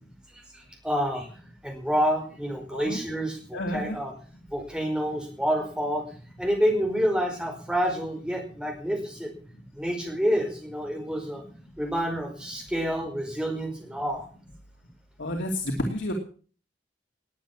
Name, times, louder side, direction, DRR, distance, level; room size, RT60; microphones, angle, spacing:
voice 1, 0.3-1.3 1.6-4.1 4.5-6.0 6.4-9.3 9.8-11.4 11.8-14.2, equal, 5° right, 2 dB, 4.9 m, -28 dB
voice 2, 3.5-4.0 15.2-16.1, left 1 dB, 90° left, 2 dB, 2.7 m, -30 dB
20.0 x 8.8 x 7.2 m, 0.42 s
head